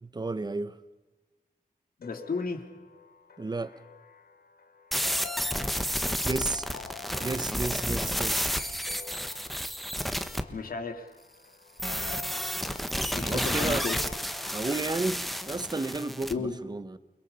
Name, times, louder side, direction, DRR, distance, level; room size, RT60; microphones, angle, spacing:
voice 1, 0.0-0.8 3.4-3.7 6.2-6.7 7.2-8.5 13.2-13.8 14.5-17.0, right 3 dB, 25° right, 13 dB, 1.2 m, -32 dB
sound 1, 2.0-15.7, left 7 dB, 90° left, 1.6 m, -48 dB
voice 2, 2.0-2.6 10.5-11.1 13.1-14.0 16.3-16.6, left 4 dB, 70° left, 5 dB, 3.0 m, -33 dB
sound 2, 4.9-10.4 11.8-16.3, equal, ahead, 1.3 m, -31 dB
29.0 x 21.5 x 5.6 m, 1.2 s
wide cardioid pair, 105°, 15 cm